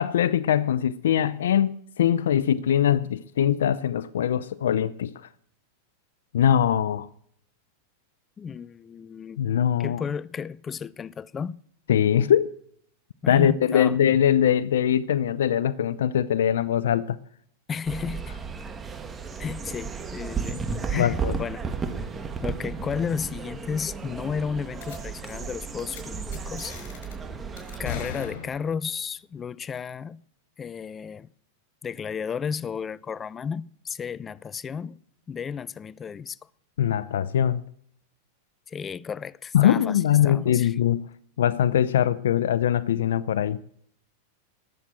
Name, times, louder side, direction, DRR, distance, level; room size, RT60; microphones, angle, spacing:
voice 1, 0.0-5.3 6.3-7.1 9.4-10.0 11.9-12.5 13.3-17.2 20.9-21.3 36.8-37.6 39.5-41.1 41.4-43.6, left 10 dB, 85° left, 0.5 m, -22 dB
voice 2, 8.4-9.4 9.8-11.6 13.2-14.0 17.7-18.4 19.4-21.7 22.4-26.7 27.8-30.2 30.6-31.3 31.8-35.0 35.3-36.5 38.7-40.8, left 6 dB, 20° left, 0.5 m, -33 dB
sound 1, 17.8-28.0, right 5 dB, 15° right, 1.9 m, -34 dB
sound 2, 24.8-25.0 25.2-25.5 25.8-26.0 26.3-27.1 27.6-28.9, left 7 dB, 65° left, 6.2 m, -38 dB
20.0 x 7.6 x 7.5 m
hypercardioid pair, 125°, 0 cm